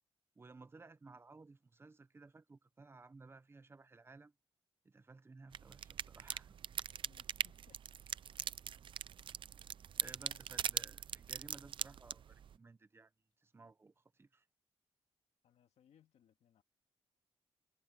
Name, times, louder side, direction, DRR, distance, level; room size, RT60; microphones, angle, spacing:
voice 1, 0.4-4.3 4.8-6.6 9.9-13.1 13.4-14.5, right 3 dB, 20° right, 0.9 m, -57 dB
sound 1, 5.5-12.5, right 8 dB, 50° right, 0.5 m, -42 dB
voice 2, 7.0-8.3 10.0-10.5 15.4-16.6, left 9 dB, 85° left, 2.0 m, -69 dB
wide cardioid pair, 155°, 11 cm